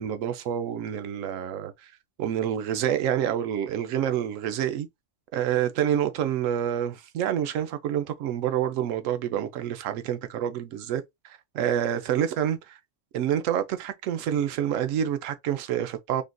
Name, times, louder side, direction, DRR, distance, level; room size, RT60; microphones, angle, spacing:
voice 1, 0.0-1.9 2.2-4.9 5.3-12.8 13.1-16.2, right 10 dB, 85° right, 1.0 m, -28 dB
3.6 x 2.5 x 2.2 m
omnidirectional pair, 1.3 m